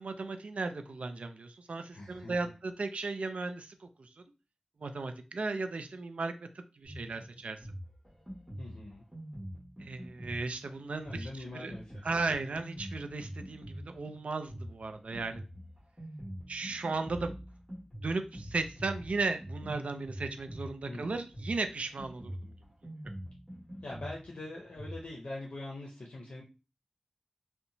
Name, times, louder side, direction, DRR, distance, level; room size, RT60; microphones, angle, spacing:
voice 1, 0.0-3.7 4.0-4.1 4.8-6.3 6.8-7.6 9.8-11.3 11.5-11.7 12.0-15.4 16.5-17.3 18.0-22.5, right 3 dB, 85° right, 7 dB, 0.3 m, -35 dB
voice 2, 1.9-2.5 8.6-9.0 11.0-12.4 20.9-21.2 23.8-26.4, left 2 dB, 85° left, -2 dB, 0.5 m, -43 dB
Drum kit, 6.8-25.0, equal, 5° left, 1.4 m, -45 dB
2.8 x 2.1 x 2.6 m, 0.31 s
wide cardioid pair, 80°, 2 cm